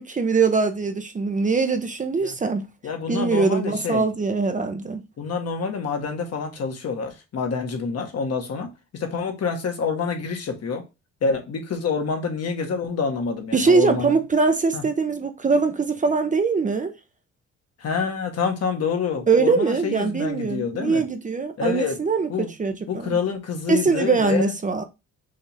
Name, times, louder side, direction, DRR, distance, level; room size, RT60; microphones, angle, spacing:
voice 1, 0.0-2.6 3.1-5.0 13.5-16.9 19.3-23.2 23.7-24.8, right 4 dB, 25° right, 0.6 m, -22 dB
voice 2, 2.8-4.1 5.2-10.8 11.2-14.1 14.7-14.8 17.8-21.0 21.6-22.0 22.3-22.5 22.9-24.5, left 5 dB, 55° left, 1.4 m, -27 dB
5.6 x 2.7 x 3.4 m
cardioid pair, 90°, 30 cm